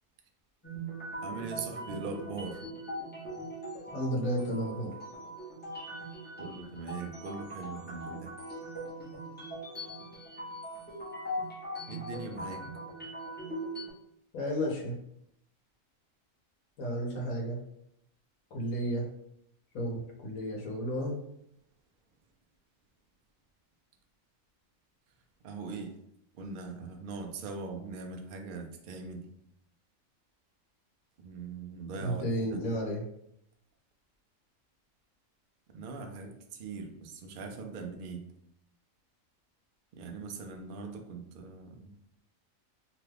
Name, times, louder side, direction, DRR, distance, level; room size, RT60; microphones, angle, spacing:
sound 1, 0.6-13.9, right 1 dB, 10° left, 0.5 m, -41 dB
voice 1, 1.2-2.6 6.3-8.3 11.9-12.7 25.4-25.9 26.3-29.3 31.2-32.6 35.7-38.3 39.9-42.0, right 4 dB, 65° right, 3 dB, 0.5 m, -41 dB
voice 2, 3.9-4.9 14.3-14.9 16.8-17.6 18.5-19.0 19.7-21.2 32.0-33.0, equal, 85° left, -2 dB, 1.2 m, -32 dB
2.9 x 2.3 x 3.3 m, 0.75 s
omnidirectional pair, 1.4 m